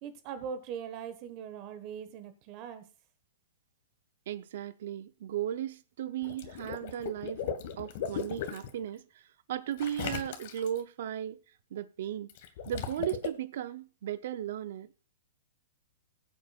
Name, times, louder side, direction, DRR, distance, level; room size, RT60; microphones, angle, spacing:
voice 1, 0.0-2.8, right 7 dB, 40° right, 1.2 m, -41 dB
voice 2, 4.3-7.4 7.8-9.2 9.5-11.4 11.7-12.3 12.7-15.1, right 10 dB, 65° right, 0.6 m, -36 dB
Water / Liquid, 6.2-8.7 9.8-10.8 12.3-13.3, left 8 dB, 55° left, 1.5 m, -37 dB
20.0 x 7.7 x 2.3 m
hypercardioid pair, 140°, 0 cm